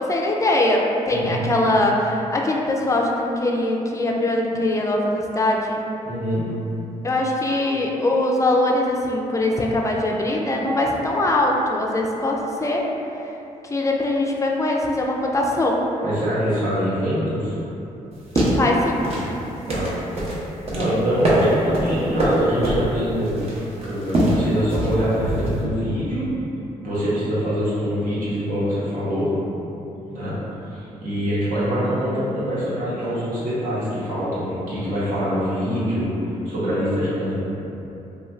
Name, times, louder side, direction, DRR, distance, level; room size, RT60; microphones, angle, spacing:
voice 1, 0.0-5.8 7.0-12.9 13.6-15.8 18.5-19.1, left 1 dB, 20° left, -1 dB, 0.4 m, -22 dB
voice 2, 1.1-1.4 6.0-6.4 16.0-17.5 19.7-19.9 20.7-23.5 23.8-26.2 26.8-29.3 30.1-30.3 30.7-37.4, equal, 65° right, -10 dB, 1.1 m, -24 dB
sound 1, 18.1-25.6, right 1 dB, 45° right, 0.7 m, -23 dB
2.5 x 2.3 x 3.1 m, 2.9 s
supercardioid pair, 65°, 15 cm